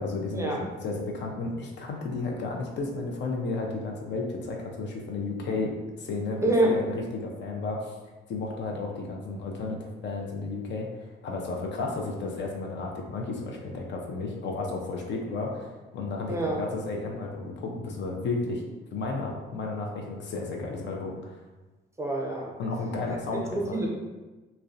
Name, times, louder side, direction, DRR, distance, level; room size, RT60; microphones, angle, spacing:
voice 1, 0.0-5.7 6.0-7.9 8.3-18.6 18.9-21.4 22.6-23.8, left 3 dB, 65° left, 1 dB, 0.5 m, -33 dB
voice 2, 6.4-6.7 16.3-16.6 22.0-22.5 23.5-23.9, right 2 dB, 15° right, -2 dB, 0.5 m, -25 dB
2.5 x 2.1 x 2.4 m, 1.2 s
cardioid pair, 90°, 20 cm